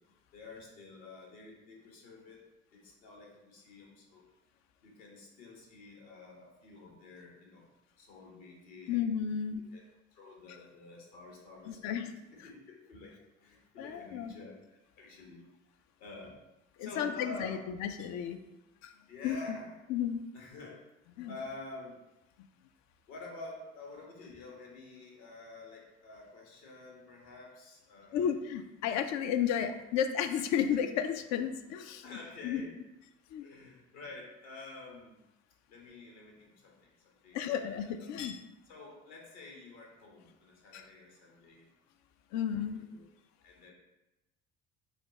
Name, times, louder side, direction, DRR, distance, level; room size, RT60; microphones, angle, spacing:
voice 1, 0.3-2.4 2.7-4.2 4.8-7.7 8.0-9.1 9.7-9.8 10.1-12.1 12.4-15.5 16.0-16.4 16.8-17.6 19.1-19.7 20.3-20.7 21.3-22.0 23.1-28.3 32.0-32.7 33.4-35.2 35.7-38.1 38.6-41.7 42.8-43.1 43.4-43.7, left 3 dB, 65° left, -1 dB, 1.3 m, -49 dB
voice 2, 8.9-9.6 11.7-12.1 13.8-14.3 16.8-18.4 18.8-18.9 19.2-19.6 19.9-20.2 21.2-21.3 28.1-32.2 32.4-32.6 33.3-33.5 37.3-38.4 40.7-40.9 42.3-42.8, left 8 dB, 50° left, 8 dB, 0.5 m, -33 dB
4.2 x 2.3 x 4.0 m, 0.98 s
figure-of-eight pair, 55°, 36 cm